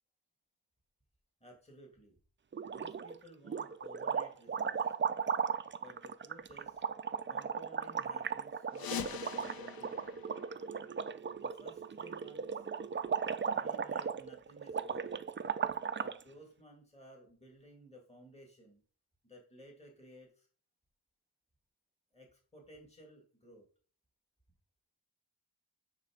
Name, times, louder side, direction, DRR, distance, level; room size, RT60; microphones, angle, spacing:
voice 1, 1.4-2.2 2.7-5.0 5.7-6.8 7.3-10.2 11.4-12.7 13.6-15.3 15.9-18.8 19.2-20.5 22.1-23.6, equal, 15° left, 0 dB, 1.9 m, -56 dB
sound 1, 2.5-3.2 3.5-16.2, right 6 dB, 30° right, 0.4 m, -37 dB
sound 2, 8.7-11.3, left 8 dB, 55° left, 0.5 m, -44 dB
9.5 x 3.4 x 4.9 m, 0.43 s
wide cardioid pair, 85°, 43 cm